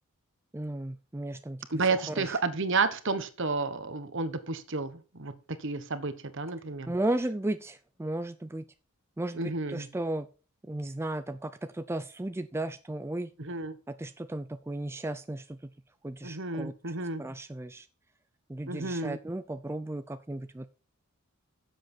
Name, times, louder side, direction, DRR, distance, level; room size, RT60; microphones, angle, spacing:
voice 1, 0.5-1.7 2.1-2.4 6.9-8.7 9.2-10.3 10.7-13.3 14.0-15.6 16.0-17.9 18.5-20.7, right 1 dB, 10° right, 11 dB, 0.4 m, -35 dB
voice 2, 1.7-5.3 5.6-6.9 9.3-9.9 13.4-13.8 16.2-17.2 18.7-19.2, right 3 dB, 55° right, 11 dB, 1.3 m, -31 dB
11.0 x 7.7 x 4.4 m, 0.34 s
head